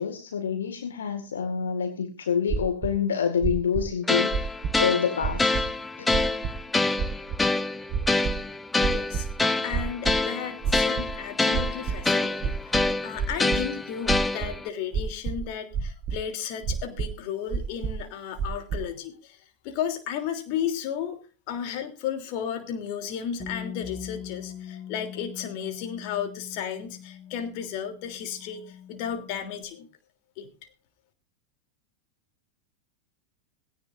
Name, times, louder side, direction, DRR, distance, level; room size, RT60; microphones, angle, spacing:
voice 1, 0.0-4.5 4.8-5.7, left 7 dB, 65° left, 7 dB, 1.9 m, -27 dB
sound 1, 2.5-2.9 3.4-3.9 4.3-4.8 5.2-5.6 6.1-6.5 7.0-7.4 7.9-8.4 8.8-9.3 9.7-10.2 10.6-11.2 11.5-12.0 12.4-13.6 14.1-14.5 14.9-15.5 15.7-16.2 16.6-17.1 17.5-18.0 18.4-18.8, right 6 dB, 35° right, 1.1 m, -28 dB
sound 2, 4.1-14.7, left 2 dB, 10° left, 0.8 m, -26 dB
voice 2, 8.9-9.3 9.6-19.4 19.6-21.2 21.5-29.9 30.4-30.5, left 8 dB, 45° left, 6 dB, 3.2 m, -34 dB
Bass guitar, 23.4-29.6, left 9 dB, 25° left, 5.4 m, -42 dB
18.0 x 17.0 x 2.6 m, 0.34 s
figure-of-eight pair, 90°, 0 cm